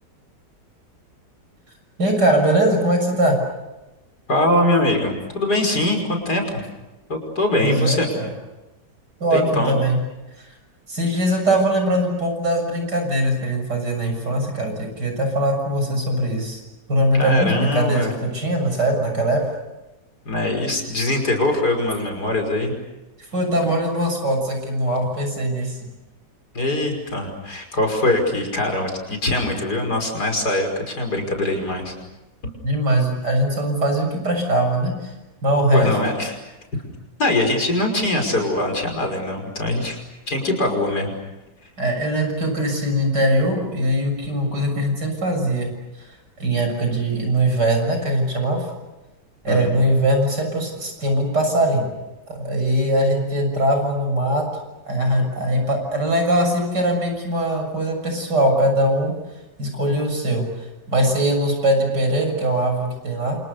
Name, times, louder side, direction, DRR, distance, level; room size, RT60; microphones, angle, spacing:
voice 1, 2.0-3.4 7.6-8.3 9.2-10.0 10.9-16.6 16.9-19.4 23.3-25.8 32.6-34.9 35.4-36.0 41.8-45.7 46.4-48.7 49.4-51.9 52.3-54.5 54.9-59.1 59.6-60.5 60.9-63.4, right 1 dB, 75° right, 4 dB, 7.4 m, -21 dB
voice 2, 4.3-6.6 7.1-8.1 9.3-9.8 17.1-18.1 20.3-22.7 26.5-31.9 32.4-32.5 35.7-36.4 37.2-40.0 40.3-41.1 49.5-49.7, left 1 dB, 65° left, 4 dB, 6.2 m, -22 dB
29.0 x 28.0 x 6.8 m, 1.0 s
omnidirectional pair, 1.9 m